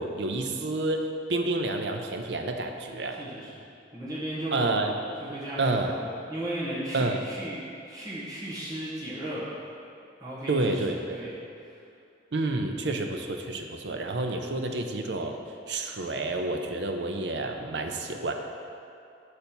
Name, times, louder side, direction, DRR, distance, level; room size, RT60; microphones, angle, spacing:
voice 1, 0.0-3.2 4.5-5.0 5.6-5.9 6.9-7.2 10.5-11.2 12.3-15.4 15.7-18.3, right 2 dB, 70° right, 4 dB, 0.6 m, -29 dB
voice 2, 3.1-3.6 3.9-4.6 5.2-5.6 5.9-7.6 7.9-9.5 10.2-10.8 11.1-11.7, right 1 dB, 20° right, -9 dB, 1.3 m, -36 dB
6.8 x 5.3 x 4.5 m, 2.5 s
head